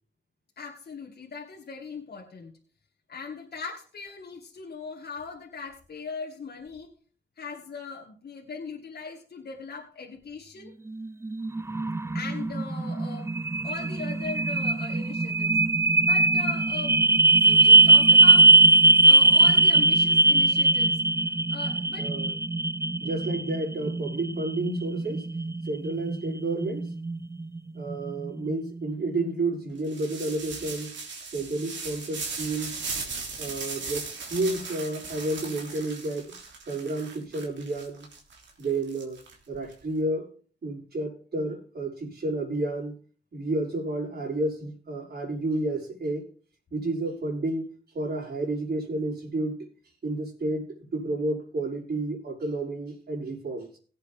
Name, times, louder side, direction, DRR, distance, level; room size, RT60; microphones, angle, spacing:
voice 1, 0.6-2.6 3.1-6.9 7.4-10.7 12.1-13.3 13.6-15.6 16.0-17.0 17.4-18.5 19.0-21.0 21.5-22.1, left 5 dB, 60° left, 0 dB, 2.1 m, -39 dB
sound 1, 10.9-28.9, right 3 dB, 15° right, 0.5 m, -21 dB
voice 2, 22.0-22.3 23.0-25.3 25.6-26.9 27.7-30.9 31.3-32.8 33.4-36.3 36.7-38.1 38.6-39.2 39.5-40.3 40.6-43.0 43.3-46.3 46.7-49.7 50.0-50.7 50.9-53.8, right 2 dB, 60° right, -2 dB, 5.5 m, -31 dB
sound 2, 29.8-39.7, right 4 dB, 75° right, 3.2 m, -38 dB
17.0 x 8.1 x 3.6 m, 0.40 s
cardioid pair, 55°, 19 cm